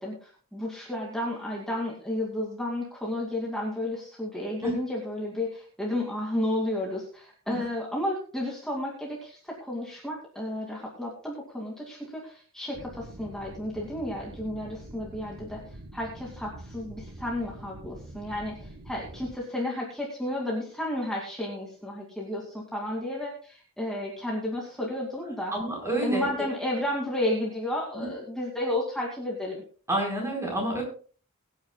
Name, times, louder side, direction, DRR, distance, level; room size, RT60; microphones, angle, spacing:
voice 1, 0.0-25.5 26.0-29.6, left 1 dB, 5° left, -4 dB, 2.4 m, -32 dB
sound 1, 12.7-19.4, right 1 dB, 65° right, 1.4 m, -45 dB
voice 2, 25.5-26.3 27.9-28.1 29.9-30.8, right 1 dB, 15° right, -1 dB, 4.5 m, -28 dB
23.0 x 9.3 x 2.3 m, 0.41 s
head